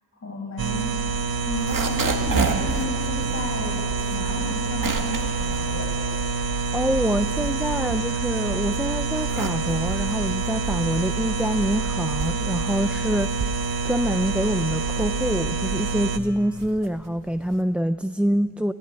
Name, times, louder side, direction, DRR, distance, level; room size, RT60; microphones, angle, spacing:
voice 1, 0.2-0.9 1.4-6.0, left 1 dB, 50° left, -1 dB, 7.7 m, -32 dB
sound 1, 0.6-16.2, right 4 dB, 80° right, 1.2 m, -27 dB
sound 2, 1.4-6.7 7.1-8.5 9.0-17.8, right 4 dB, 60° right, 2.1 m, -32 dB
voice 2, 6.7-13.4 13.8-18.7, equal, 5° right, 9 dB, 0.5 m, -25 dB
30.0 x 15.5 x 10.0 m, 2.2 s
wide cardioid pair, 95°, 36 cm